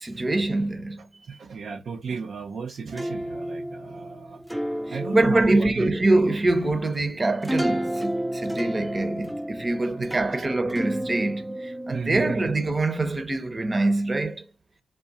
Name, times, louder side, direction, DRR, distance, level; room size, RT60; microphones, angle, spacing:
voice 1, 0.0-1.0 4.9-14.5, right 2 dB, 30° right, 0.8 m, -24 dB
voice 2, 1.0-4.4 4.9-5.9 9.9-10.1 10.4-10.5 11.9-12.6, right 5 dB, 65° right, 0.4 m, -34 dB
sound 1, 2.9-12.0, right 1 dB, 5° right, 0.4 m, -32 dB
3.6 x 2.3 x 4.0 m
supercardioid pair, 45°, 0 cm